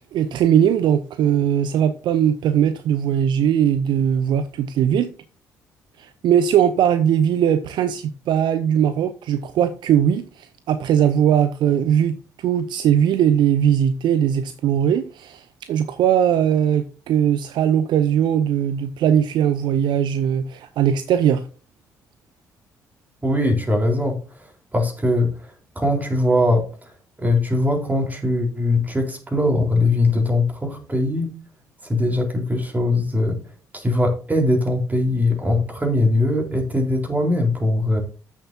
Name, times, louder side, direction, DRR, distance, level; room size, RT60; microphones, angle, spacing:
voice 1, 0.0-5.1 6.0-21.4, right 9 dB, 60° right, 0.7 m, -20 dB
voice 2, 23.2-24.2 24.7-25.3 25.8-26.6 27.2-31.3 31.8-33.4 33.7-38.0, left 2 dB, 20° right, 4.1 m, -21 dB
13.5 x 7.3 x 2.7 m
figure-of-eight pair, 45°, 9 cm